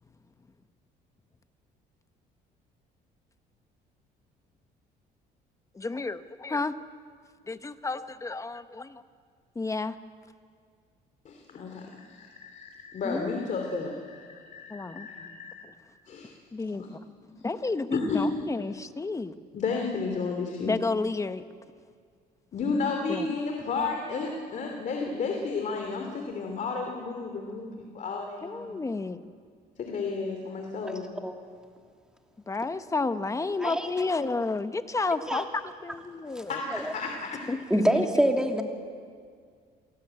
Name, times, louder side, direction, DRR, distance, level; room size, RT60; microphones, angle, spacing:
voice 1, 5.7-6.8 7.5-9.0 9.5-10.0 13.0-13.4 14.7-15.1 16.5-17.0 17.4-19.3 20.6-21.4 23.1-23.3 28.4-29.2 32.5-36.6 37.5-37.9, left 3 dB, 20° left, 11 dB, 1.1 m, -31 dB
voice 2, 11.2-15.5 16.1-16.3 16.8-16.9 17.9-18.3 19.5-20.8 22.5-28.7 29.8-31.1 36.5-37.4, left 4 dB, 45° left, 2 dB, 3.1 m, -32 dB
voice 3, 30.9-31.4 33.4-33.9 35.2-35.4 36.3-36.4 36.7-37.0 37.5-38.6, right 1 dB, 5° right, 3 dB, 2.8 m, -27 dB
27.5 x 18.0 x 9.0 m, 2.1 s
cardioid pair, 110°, 17 cm